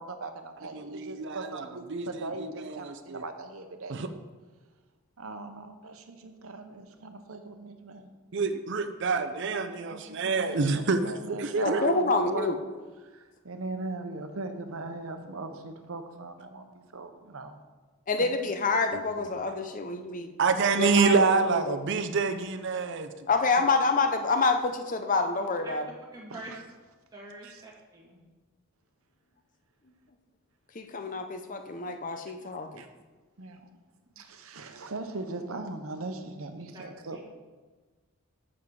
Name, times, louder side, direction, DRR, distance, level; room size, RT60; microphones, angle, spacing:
voice 1, 0.0-4.0 5.2-8.1 9.9-12.5 13.0-17.6 18.2-18.4 23.6-23.7 26.3-26.6 27.4-27.6 32.8-32.9 33.4-33.7 34.2-37.2, right 3 dB, 70° right, 7 dB, 0.9 m, -39 dB
voice 2, 0.7-1.6 1.9-3.2 3.9-4.1 8.3-12.0 18.9-19.0 20.4-23.1, right 4 dB, 55° right, 8 dB, 0.6 m, -27 dB
voice 3, 11.6-12.6 18.1-20.3 20.8-21.8 23.3-25.9 30.7-32.8, left 3 dB, 35° left, 7 dB, 0.7 m, -27 dB
voice 4, 25.4-25.7 26.1-26.5 27.1-28.2 33.5-33.6 34.2-34.3 36.7-36.8 37.1-37.2, right 1 dB, 15° right, -4 dB, 1.7 m, -46 dB
7.2 x 7.2 x 4.8 m, 1.3 s
head